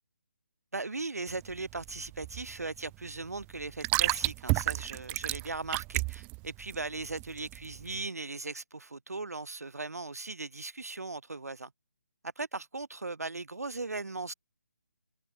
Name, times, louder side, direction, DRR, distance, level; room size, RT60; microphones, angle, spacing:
voice 1, 0.7-11.7 12.4-14.3, right 3 dB, 70° right, 5.1 m, -38 dB
sound 1, 1.3-8.0, right 27 dB, 15° right, 3.9 m, -33 dB
figure-of-eight pair, 145°, 9 cm